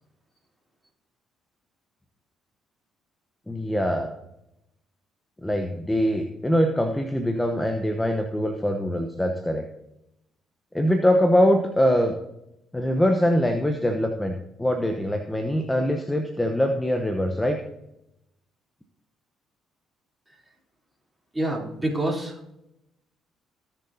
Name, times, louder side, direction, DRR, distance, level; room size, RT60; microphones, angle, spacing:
voice 1, 3.5-4.1 5.4-9.7 10.7-12.2 12.7-17.6, equal, 10° left, 4 dB, 1.0 m, -23 dB
voice 2, 21.3-22.5, right 1 dB, 10° right, -1 dB, 3.4 m, -27 dB
17.5 x 6.7 x 2.8 m, 0.87 s
supercardioid pair, 60°, 0 cm